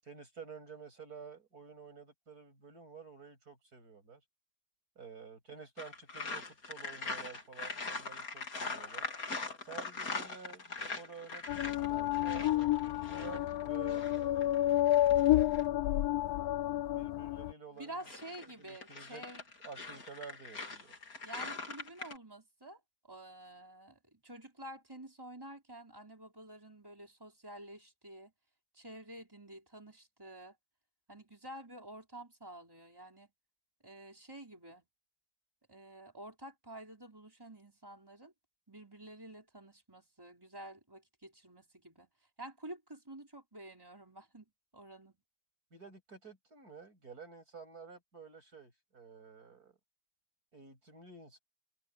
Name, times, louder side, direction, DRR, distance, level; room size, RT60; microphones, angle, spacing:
voice 1, 0.0-4.2 5.0-9.0 9.6-14.9 16.6-18.0 18.6-19.2 19.6-20.9 45.7-49.8 50.5-51.4, right 5 dB, 90° right, 8.5 m, -51 dB
sound 1, 5.8-15.7 17.8-22.2, left 3 dB, 70° left, 3.2 m, -42 dB
sound 2, 11.5-17.5, left 14 dB, 85° left, 1.1 m, -30 dB
voice 2, 17.7-19.4 21.2-28.3 28.7-30.6 31.1-33.3 33.8-34.9 35.7-38.3 38.7-42.1 42.4-44.5 44.7-45.2, right 1 dB, 15° right, 5.0 m, -50 dB
omnidirectional pair, 1.6 m